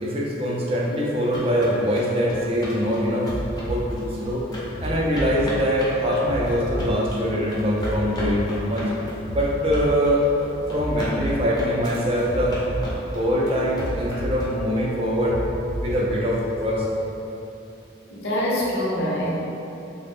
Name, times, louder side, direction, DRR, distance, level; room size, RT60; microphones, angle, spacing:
voice 1, 0.0-3.3 3.7-4.5 4.8-8.9 9.3-10.3 10.7-12.6 13.1-15.4 15.8-16.9, equal, 30° right, -3 dB, 0.3 m, -23 dB
sound 1, 1.0-14.8, left 1 dB, 20° left, 0.5 m, -36 dB
sound 2, 3.2-3.8 4.7-5.3 6.2-6.8 7.7-8.3 9.3-9.8 10.8-11.3 12.3-12.9 13.8-14.4 15.3-15.9 16.8-16.9, right 1 dB, 90° right, 0.5 m, -30 dB
voice 2, 18.1-19.4, equal, 65° left, -6 dB, 0.6 m, -24 dB
3.0 x 2.0 x 3.4 m, 2.9 s
head